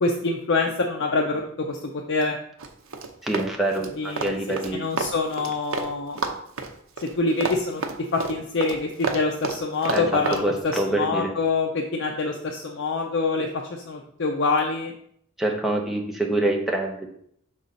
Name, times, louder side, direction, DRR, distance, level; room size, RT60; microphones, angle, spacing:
voice 1, 0.0-1.8 2.1-2.4 4.0-4.4 4.7-6.2 7.2-7.8 8.1-14.9, left 3 dB, 60° left, 1 dB, 0.6 m, -25 dB
Run, 2.6-5.9 6.2-10.4, right 4 dB, 70° right, 0.7 m, -30 dB
voice 2, 3.2-4.8 9.9-10.1 10.4-11.3 15.4-17.1, right 1 dB, ahead, -1 dB, 0.8 m, -25 dB
6.3 x 4.0 x 4.1 m, 0.68 s
head